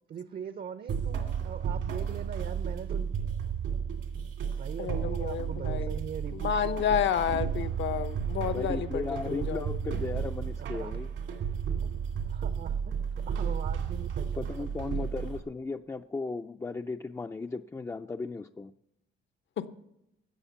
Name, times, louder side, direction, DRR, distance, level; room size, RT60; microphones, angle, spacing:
voice 1, 0.1-3.1 4.5-6.6 9.3-9.4 10.1-10.2 10.6-10.9 11.3-11.4 12.3-15.1, right 7 dB, 50° right, 11 dB, 0.7 m, -41 dB
sound 1, 0.9-15.4, right 7 dB, 80° right, 2.2 m, -33 dB
voice 2, 4.8-5.9 6.3-10.0, left 9 dB, 65° left, 12 dB, 0.9 m, -31 dB
voice 3, 8.5-11.1 14.4-18.7, left 3 dB, 15° left, 6 dB, 0.4 m, -36 dB
13.0 x 8.1 x 6.9 m, 0.83 s
cardioid pair, 90°, 20 cm